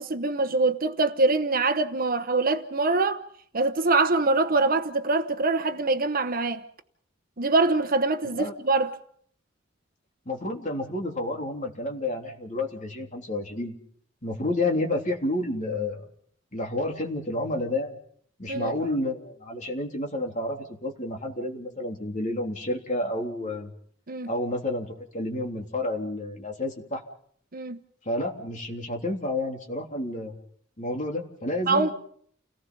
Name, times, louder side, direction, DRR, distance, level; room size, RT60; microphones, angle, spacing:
voice 1, 0.0-3.2 3.5-6.6 7.4-9.0 18.5-18.7 24.1-24.3 27.5-27.8 31.7-31.9, right 3 dB, 45° right, 1.1 m, -24 dB
voice 2, 10.3-13.7 14.2-16.1 16.5-18.0 18.4-23.7 24.3-27.0 28.1-30.4 30.8-31.9, left 1 dB, 40° left, 3.5 m, -30 dB
30.0 x 18.5 x 5.5 m
head